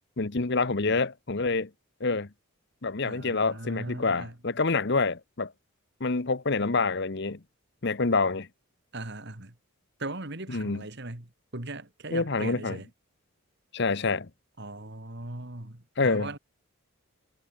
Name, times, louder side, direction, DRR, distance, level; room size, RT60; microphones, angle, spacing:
voice 1, 0.2-1.7 2.0-2.3 2.8-5.5 6.0-7.4 7.8-8.5 10.5-10.8 12.1-12.8 13.7-14.3 16.0-16.3, left 3 dB, 50° left, 1.0 m, -27 dB
voice 2, 3.0-4.4 8.9-9.5 10.0-12.9 14.6-16.4, right 2 dB, 50° right, 2.4 m, -39 dB
head